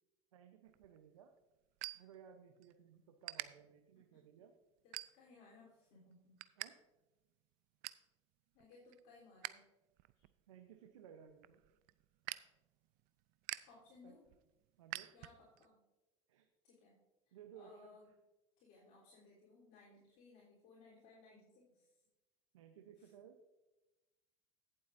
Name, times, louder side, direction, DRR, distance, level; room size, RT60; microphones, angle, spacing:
voice 1, 0.3-1.3 1.9-4.5 6.6-6.7 10.5-11.6 14.0-14.2 14.8-15.1 16.3-16.5 17.3-17.7 22.5-23.4, right 8 dB, 90° right, 5 dB, 0.8 m, -59 dB
sound 1, 0.7-2.7 3.0-3.5 4.0-4.3 4.8-5.5 5.9-6.7 7.0-7.1 7.4-8.1 8.5-9.5 9.9-15.7, right 20 dB, 65° right, 0.5 m, -48 dB
voice 2, 4.8-6.4 8.5-9.6 10.2-10.3 13.7-14.3 15.1-15.8 16.6-17.0 17.3-18.1 18.6-22.0 23.0-23.1, left 3 dB, 65° left, -7 dB, 3.6 m, -63 dB
16.5 x 7.8 x 2.6 m, 1.1 s
hypercardioid pair, 85°, 16 cm